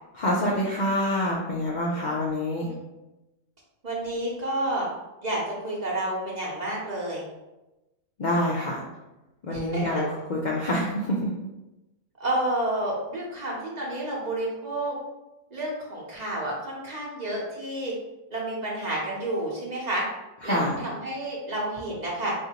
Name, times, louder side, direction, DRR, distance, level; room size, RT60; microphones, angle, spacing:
voice 1, 0.2-2.7 8.2-8.8 9.4-11.3 20.4-20.8, left 1 dB, 80° left, -3 dB, 0.4 m, -26 dB
voice 2, 3.8-4.9 5.2-7.3 9.5-10.0 12.2-15.0 15.5-17.9 18.3-20.0 20.4-22.3, right 1 dB, 40° right, -5 dB, 0.8 m, -30 dB
3.7 x 2.5 x 2.8 m, 1.0 s
omnidirectional pair, 1.4 m